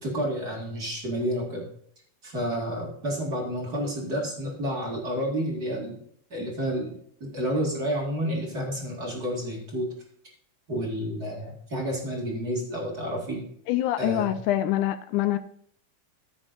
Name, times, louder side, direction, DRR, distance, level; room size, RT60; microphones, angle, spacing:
voice 1, 0.0-1.7 2.2-6.0 6.3-6.9 7.2-9.9 10.7-13.4 14.0-14.4, equal, 30° right, 2.6 m, -30 dB
voice 2, 13.7-15.4, left 13 dB, 80° left, 2.0 m, -25 dB
14.0 x 8.3 x 2.6 m
omnidirectional pair, 3.7 m